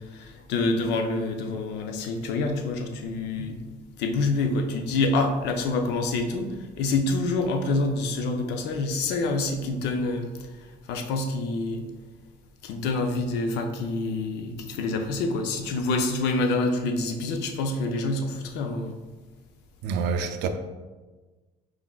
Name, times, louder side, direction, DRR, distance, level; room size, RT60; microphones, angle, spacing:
voice 1, 0.0-3.6 4.0-11.9 12.6-19.0, left 3 dB, 85° left, 0.5 m, -27 dB
voice 2, 19.8-20.5, right 6 dB, 85° right, 0.4 m, -27 dB
4.7 x 3.7 x 2.3 m
cardioid pair, 110°, 17 cm